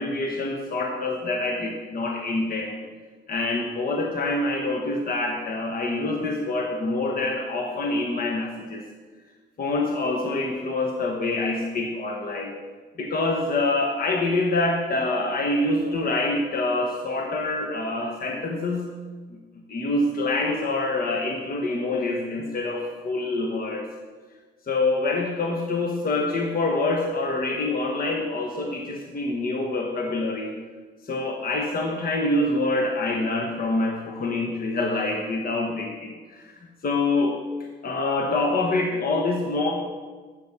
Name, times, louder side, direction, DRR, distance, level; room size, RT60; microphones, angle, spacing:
voice 1, 0.0-2.8 3.3-8.8 9.6-12.5 13.0-18.9 19.3-19.4 19.7-23.9 24.7-30.5 31.0-37.4 37.8-39.7, left 2 dB, 45° left, 2 dB, 1.2 m, -26 dB
9.4 x 8.3 x 5.6 m, 1.4 s
cardioid pair, 90°, 20 cm